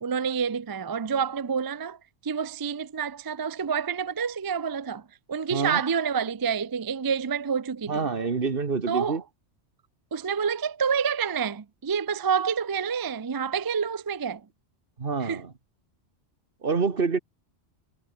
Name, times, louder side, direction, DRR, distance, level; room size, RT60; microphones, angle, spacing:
voice 1, 0.0-2.0 2.2-5.0 5.3-8.0 8.9-9.2 10.1-14.4 15.2-15.4, right 6 dB, 35° right, 0.3 m, -28 dB
voice 2, 5.5-5.8 7.9-9.2 15.0-15.5 16.6-17.2, right 4 dB, 55° right, 1.8 m, -27 dB
omnidirectional pair, 1.2 m